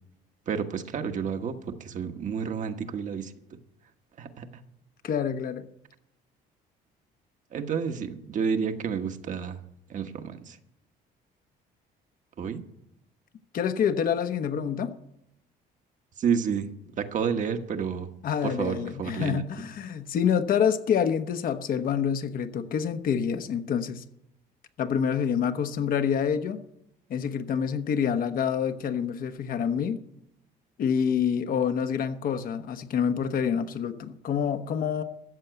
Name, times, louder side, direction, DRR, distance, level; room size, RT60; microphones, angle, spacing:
voice 1, 0.5-3.3 4.2-4.5 7.5-9.6 9.9-10.6 12.4-12.6 16.2-16.7 17.0-18.1 18.4-19.4, right 6 dB, 50° right, 1.3 m, -30 dB
voice 2, 5.0-5.7 13.5-14.9 18.2-24.0 24.8-26.6 27.1-30.0 30.8-35.0, left 7 dB, 55° left, 1.2 m, -27 dB
14.0 x 7.3 x 8.1 m
cardioid pair, 110°, 17 cm